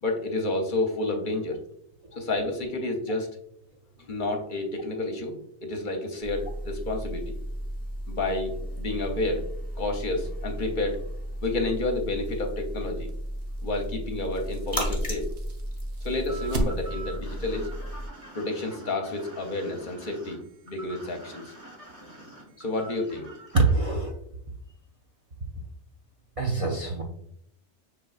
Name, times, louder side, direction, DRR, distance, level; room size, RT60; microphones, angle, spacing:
voice 1, 0.0-1.6 2.2-3.3 4.0-7.4 8.1-9.4 9.8-11.0 11.4-13.1 13.6-15.3 16.0-17.7 18.3-20.4 20.7-21.5 22.6-23.2, left 2 dB, 55° left, 3 dB, 0.7 m, -30 dB
sound 1, 6.2-18.1, equal, 10° left, 1.1 m, -34 dB
sound 2, 11.6-17.2, right 1 dB, 70° right, 0.9 m, -37 dB
sound 3, 16.3-23.7, right 2 dB, 30° right, 1.2 m, -45 dB
voice 2, 23.5-24.2 26.4-27.0, right 3 dB, 45° right, -1 dB, 0.4 m, -24 dB
6.0 x 3.1 x 2.3 m, 0.71 s
omnidirectional pair, 1.2 m